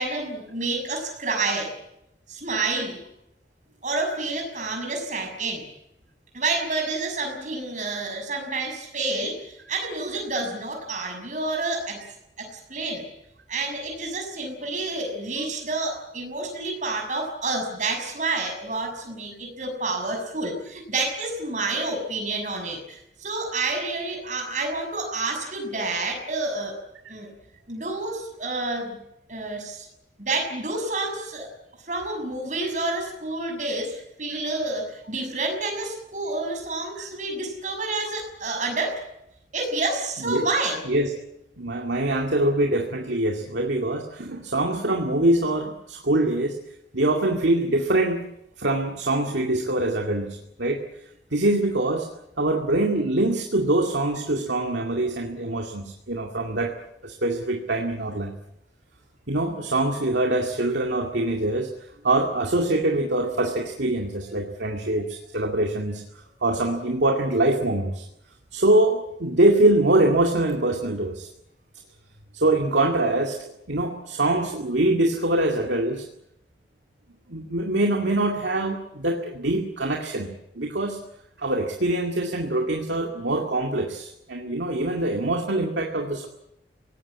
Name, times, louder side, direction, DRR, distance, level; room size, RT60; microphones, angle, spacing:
voice 1, 0.0-1.7 2.3-3.0 3.8-5.6 6.3-12.0 12.4-13.0 13.5-26.7 27.1-27.3 27.7-29.0 29.3-29.9 30.2-31.5 31.9-39.0 39.5-40.8, right 2 dB, 45° right, 4 dB, 6.4 m, -29 dB
voice 2, 41.6-46.6 46.9-48.3 48.6-50.8 51.3-52.1 52.4-56.7 57.0-58.3 59.3-61.7 62.0-68.0 68.5-71.3 72.3-73.4 73.7-76.0 77.3-80.3 80.6-81.0 81.4-86.3, right 1 dB, 90° right, 2 dB, 2.3 m, -24 dB
23.0 x 18.5 x 8.7 m, 0.81 s
head